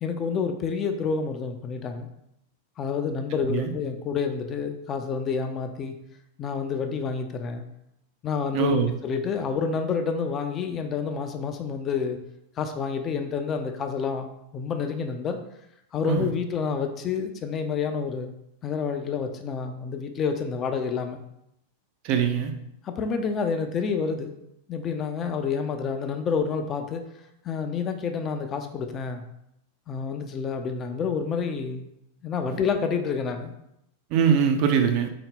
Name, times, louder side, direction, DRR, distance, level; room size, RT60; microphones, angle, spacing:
voice 1, 0.0-2.1 2.8-5.9 6.4-7.6 8.2-12.2 12.6-15.4 15.9-18.3 18.6-21.2 22.8-24.3 24.7-27.0 27.4-29.2 29.9-31.9 32.2-33.5, left 5 dB, 30° left, 7 dB, 0.3 m, -28 dB
voice 2, 8.5-9.0 16.1-16.3 22.0-22.5 32.5-32.6 34.1-35.1, right 7 dB, 45° right, 6 dB, 0.4 m, -22 dB
3.8 x 2.1 x 3.5 m, 0.79 s
figure-of-eight pair, 90°, 0 cm